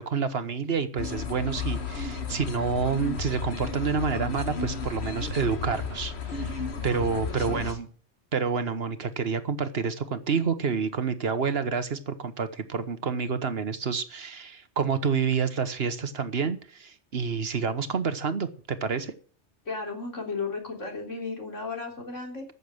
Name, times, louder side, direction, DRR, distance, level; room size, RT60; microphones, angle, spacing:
voice 1, 0.0-7.9 8.3-19.1, right 5 dB, 55° right, 1.3 m, -28 dB
sound 1, 1.0-7.7, left 5 dB, 60° left, 1.6 m, -33 dB
voice 2, 7.3-7.8 19.7-22.5, left 4 dB, 85° left, 3.9 m, -35 dB
14.0 x 6.9 x 7.8 m
omnidirectional pair, 1.2 m